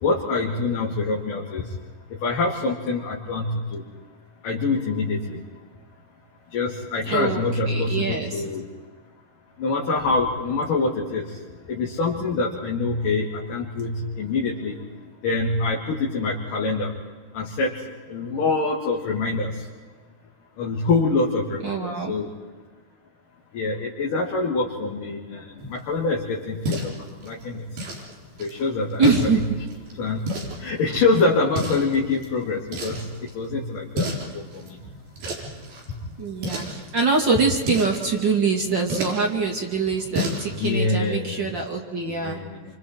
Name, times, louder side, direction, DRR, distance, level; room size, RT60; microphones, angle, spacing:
voice 1, 0.0-1.7 2.2-3.8 4.4-5.4 6.5-8.6 9.6-11.4 11.7-14.8 15.2-16.9 17.3-17.7 18.1-19.6 20.6-22.3 23.5-27.6 28.4-29.4 30.0-30.2 30.6-33.1 33.3-34.1 34.3-34.8 40.5-41.5 42.1-42.6, left 3 dB, 65° left, -3 dB, 4.2 m, -25 dB
voice 2, 7.1-8.4 21.6-22.1 29.0-29.5 36.2-42.4, right 4 dB, 35° right, 1 dB, 2.6 m, -24 dB
sound 1, 25.6-40.8, equal, 85° right, 6.6 m, -34 dB
28.5 x 26.5 x 4.6 m, 1.4 s
omnidirectional pair, 4.2 m